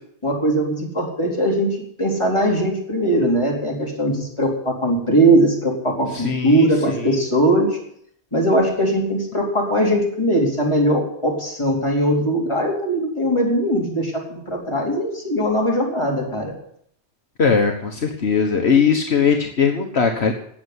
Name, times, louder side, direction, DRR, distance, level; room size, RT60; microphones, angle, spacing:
voice 1, 0.2-7.8 8.3-16.5, right 1 dB, 25° left, -2 dB, 4.3 m, -20 dB
voice 2, 6.1-7.1 17.4-20.3, left 6 dB, 65° left, 2 dB, 1.6 m, -20 dB
18.0 x 7.2 x 9.8 m, 0.68 s
omnidirectional pair, 1.2 m